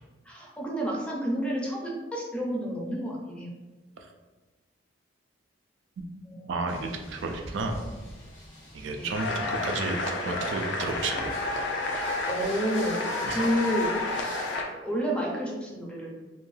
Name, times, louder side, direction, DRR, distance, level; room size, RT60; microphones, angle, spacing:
voice 1, 0.3-3.5 6.3-6.6 9.0-9.1 12.3-13.9 14.8-16.1, equal, 5° left, -2 dB, 0.5 m, -30 dB
voice 2, 6.5-7.8 8.7-11.4 13.2-13.4, right 3 dB, 80° right, 4 dB, 0.4 m, -32 dB
sound 1, 6.7-14.6, left 1 dB, 90° left, 1.0 m, -45 dB
sound 2, 9.1-14.6, left 2 dB, 70° left, 0.4 m, -30 dB
2.6 x 2.2 x 3.2 m, 1.2 s
head